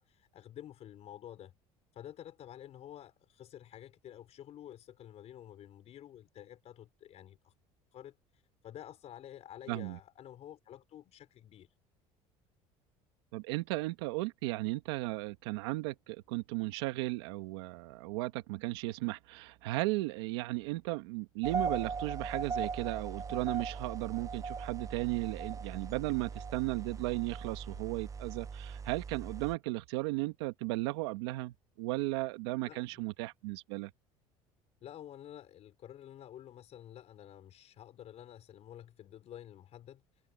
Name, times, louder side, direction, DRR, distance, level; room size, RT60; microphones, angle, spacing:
voice 1, 0.0-1.5 1.9-7.5 7.9-11.7 32.6-33.1 34.8-40.0, left 11 dB, 55° left, 4.6 m, -50 dB
voice 2, 9.7-10.0 13.3-33.9, right 20 dB, 90° right, 2.0 m, -35 dB
sound 1, 21.4-29.5, right 5 dB, 25° right, 0.7 m, -39 dB
supercardioid pair, 95°, 13 cm